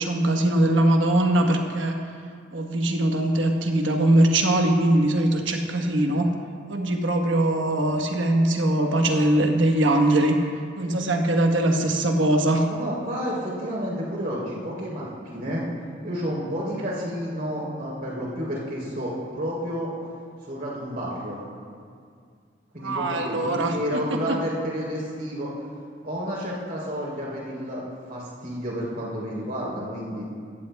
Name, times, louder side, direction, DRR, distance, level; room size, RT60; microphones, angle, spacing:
voice 1, 0.0-2.0 2.5-6.3 6.7-10.4 10.8-12.7 22.8-23.7 24.3-24.4, right 1 dB, 85° right, 3 dB, 1.2 m, -21 dB
voice 2, 12.7-15.6 16.0-19.9 20.5-21.4 22.7-25.5 26.0-30.3, equal, 50° right, -4 dB, 3.4 m, -30 dB
16.0 x 14.5 x 2.3 m, 2.2 s
head